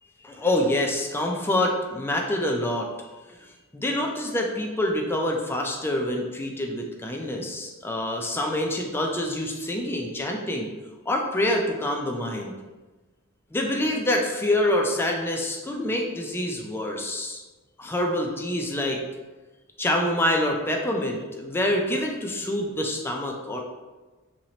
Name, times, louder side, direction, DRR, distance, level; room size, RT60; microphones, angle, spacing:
voice 1, 0.2-2.9 3.3-3.4 3.7-10.7 11.1-12.5 13.5-17.4 17.8-19.0 19.8-23.6, left 1 dB, 10° left, 1 dB, 0.3 m, -26 dB
3.0 x 2.8 x 2.8 m, 1.2 s
head